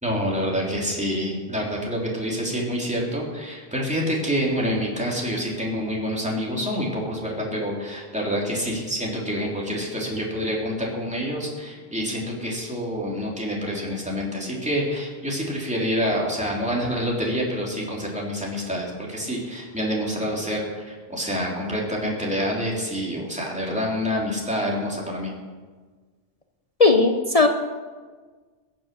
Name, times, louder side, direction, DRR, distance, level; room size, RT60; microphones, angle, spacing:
voice 1, 0.0-25.3, equal, 5° right, -3 dB, 3.2 m, -27 dB
voice 2, 26.8-27.5, left 3 dB, 35° left, 5 dB, 0.9 m, -16 dB
21.5 x 7.5 x 6.8 m, 1.4 s
omnidirectional pair, 1.1 m